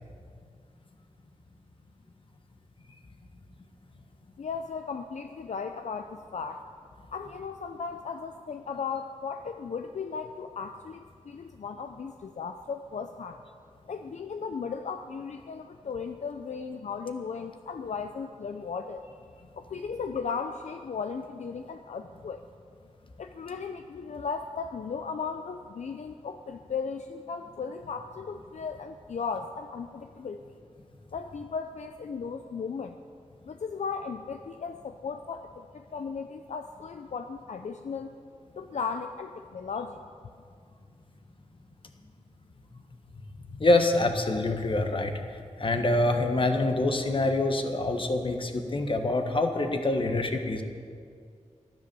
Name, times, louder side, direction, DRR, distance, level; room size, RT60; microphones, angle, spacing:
voice 1, 4.4-6.6 7.1-13.4 13.9-19.1 19.5-22.4 23.2-30.6 31.1-33.0 33.4-38.1 38.6-40.0, left 5 dB, 70° left, 6 dB, 0.5 m, -36 dB
voice 2, 43.5-45.1 45.6-50.6, left 2 dB, 45° left, 5 dB, 1.3 m, -25 dB
13.5 x 10.5 x 6.9 m, 2.2 s
wide cardioid pair, 120°, 13 cm